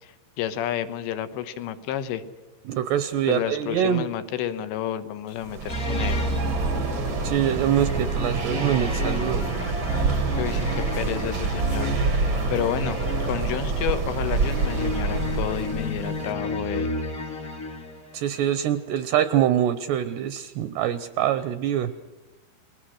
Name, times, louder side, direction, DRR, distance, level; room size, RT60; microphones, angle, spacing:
voice 1, 0.0-2.2 3.3-6.2 10.4-11.9 12.2-16.9, left 10 dB, 75° left, 11 dB, 3.3 m, -30 dB
voice 2, 2.7-4.0 7.2-9.5 18.1-21.9, right 10 dB, 75° right, 12 dB, 2.6 m, -24 dB
sound 1, 5.4-16.2, right 4 dB, 60° right, 1.3 m, -27 dB
sound 2, 5.7-18.2, left 1 dB, 35° left, 1.2 m, -31 dB
29.5 x 21.0 x 6.4 m, 1.1 s
omnidirectional pair, 5.5 m